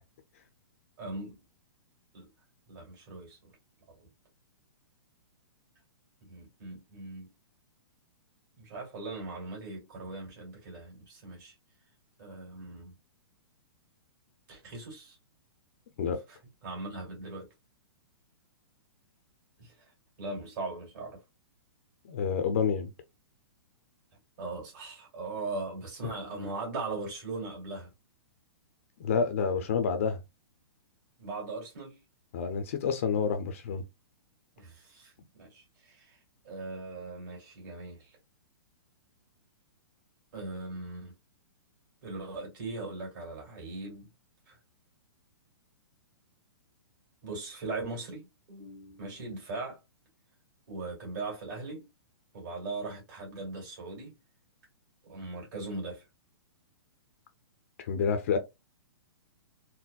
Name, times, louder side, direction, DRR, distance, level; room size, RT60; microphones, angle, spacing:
voice 1, 1.0-1.4 2.1-2.3 2.7-3.5 3.9-4.1 6.2-7.3 8.6-11.5 12.2-12.9 14.5-15.2 16.3-16.4 16.6-17.5 19.6-19.9 20.2-21.2 24.4-27.9 31.2-32.0 34.6-35.1 35.4-36.2 36.4-38.2 40.3-41.1 42.0-44.1 44.5-44.6 47.2-49.8 50.7-51.9 52.3-54.2 55.0-56.1, right 3 dB, 45° right, 2.1 m, -39 dB
voice 2, 22.1-22.9 29.0-30.2 32.3-33.8 57.8-58.4, left 6 dB, 35° left, 0.4 m, -28 dB
4.0 x 2.0 x 2.2 m
hypercardioid pair, 170°, 13 cm